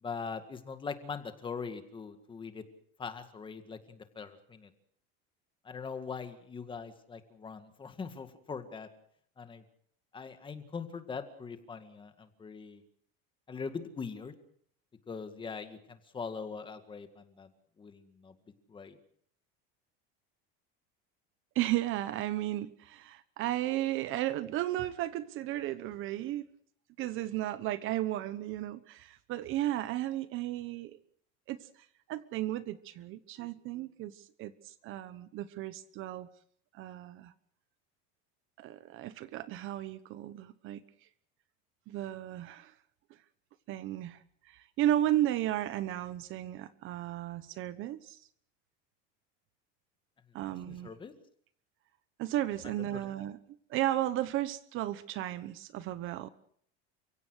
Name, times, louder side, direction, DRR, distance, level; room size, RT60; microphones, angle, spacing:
voice 1, 0.0-2.6 3.0-4.7 5.6-8.9 9.4-9.6 10.1-12.8 13.5-14.3 15.1-17.5 17.8-18.3 18.7-19.0 50.4-51.1 52.8-53.0, left 5 dB, 15° left, 8 dB, 1.9 m, -42 dB
voice 2, 21.5-26.5 27.0-30.9 31.5-31.7 32.1-36.3 36.7-37.3 38.6-40.8 41.9-42.7 43.7-44.2 44.5-48.2 50.3-50.9 52.2-53.4 53.7-56.3, right 13 dB, 45° right, 14 dB, 1.1 m, -34 dB
30.0 x 16.5 x 6.4 m, 0.62 s
cardioid pair, 165°, 29 cm